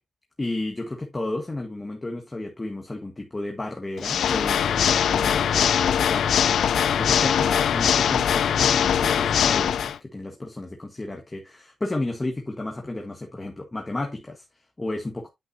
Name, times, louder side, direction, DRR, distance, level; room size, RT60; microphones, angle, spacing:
voice 1, 0.4-15.3, left 2 dB, 20° left, 1.3 m, -33 dB
Water / Mechanisms, 4.0-10.0, left 8 dB, 90° left, 0.4 m, -21 dB
9.2 x 5.6 x 2.7 m
cardioid pair, 95°, 0 cm